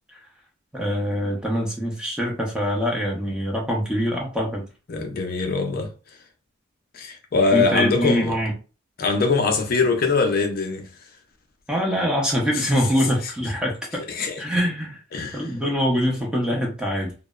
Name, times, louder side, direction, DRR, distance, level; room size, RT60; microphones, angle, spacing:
voice 1, 0.7-4.6 7.5-8.5 11.7-14.0 14.4-15.0 15.3-17.1, equal, 5° right, 0.5 m, -24 dB
voice 2, 4.9-5.9 6.9-8.4 9.0-10.9 12.5-12.7 14.1-14.4 15.1-15.5, left 4 dB, 45° left, 0.4 m, -22 dB
2.8 x 2.0 x 2.2 m
head